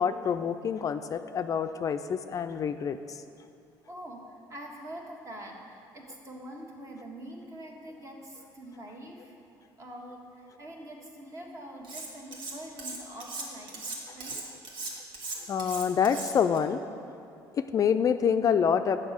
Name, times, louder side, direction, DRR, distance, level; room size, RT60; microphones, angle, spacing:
voice 1, 0.0-3.0 15.5-16.8 17.6-19.0, left 7 dB, 40° left, 9 dB, 0.3 m, -26 dB
voice 2, 3.9-9.4 9.8-14.4, right 1 dB, 35° right, 1 dB, 1.4 m, -44 dB
Cutlery silverware, 11.8-12.5 12.8-16.6, right 3 dB, 65° right, 1.4 m, -38 dB
7.1 x 5.5 x 6.5 m, 2.7 s
supercardioid pair, 80°, 9 cm